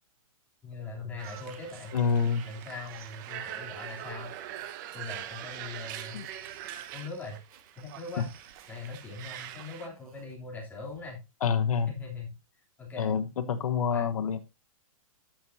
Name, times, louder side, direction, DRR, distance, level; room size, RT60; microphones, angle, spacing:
voice 1, 0.6-2.0 2.4-4.3 4.9-6.2 6.9-7.4 7.8-8.3 8.7-11.2 11.9-12.3 12.8-13.1 13.9-14.1, left 3 dB, 10° left, -2 dB, 3.2 m, -41 dB
sound 1, 0.7-3.6 4.1-4.7 5.1-9.4 9.7-10.3 10.7-11.1, right 7 dB, 80° right, 3.1 m, -55 dB
sound 2, 1.2-9.9, right 11 dB, 35° right, 0.9 m, -43 dB
voice 2, 1.9-2.5 6.1-6.3 8.2-8.3 11.4-11.9 13.0-14.4, left 6 dB, 80° left, 11 dB, 1.0 m, -27 dB
13.5 x 6.4 x 2.7 m, 0.26 s
hypercardioid pair, 160°, 18 cm